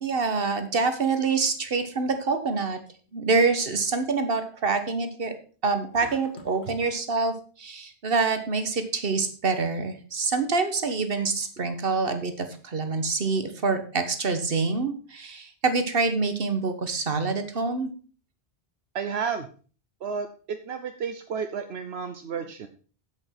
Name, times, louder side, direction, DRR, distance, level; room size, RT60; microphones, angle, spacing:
voice 1, 0.0-2.8 3.1-5.3 5.6-17.9, right 4 dB, 60° right, 9 dB, 1.6 m, -26 dB
sound 1, 5.9-6.8, left 3 dB, 90° left, 1.6 m, -46 dB
voice 2, 18.9-19.5 20.0-22.7, right 6 dB, 80° right, 7 dB, 1.1 m, -32 dB
8.0 x 8.0 x 5.8 m, 0.39 s
omnidirectional pair, 1.1 m